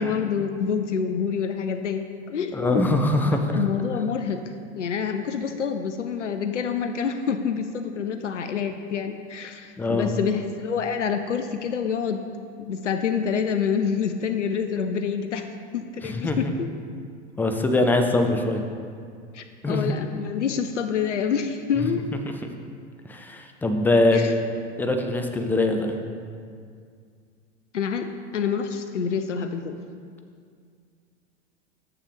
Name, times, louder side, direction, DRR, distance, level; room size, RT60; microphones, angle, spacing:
voice 1, 0.0-2.9 3.3-4.4 4.7-12.2 12.6-15.5 15.7-16.7 19.3-22.0 24.1-24.3 27.7-28.1 28.3-29.8, left 6 dB, 90° left, 7 dB, 0.5 m, -27 dB
voice 2, 2.5-3.6 9.8-10.1 16.0-16.5 17.4-18.6 19.6-19.9 21.8-21.9 23.1-24.3 24.8-26.0, left 2 dB, 5° left, 5 dB, 0.4 m, -23 dB
6.7 x 5.8 x 5.1 m, 2.2 s
figure-of-eight pair, 90°, 35 cm